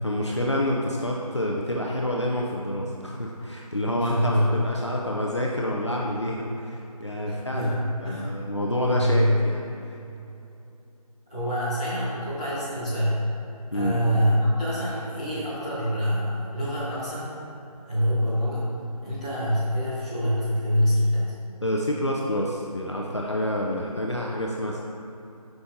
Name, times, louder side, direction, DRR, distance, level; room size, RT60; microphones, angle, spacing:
voice 1, 0.0-7.7 8.0-10.0 13.7-14.2 21.6-24.8, left 1 dB, 45° left, -2 dB, 0.5 m, -28 dB
voice 2, 4.0-4.9 7.3-8.3 8.8-9.3 11.3-13.2 13.7-17.5 17.9-18.6 19.0-21.3 24.2-24.4, equal, 10° left, -14 dB, 1.0 m, -25 dB
7.8 x 5.8 x 2.6 m, 2.8 s
figure-of-eight pair, 175°, 20 cm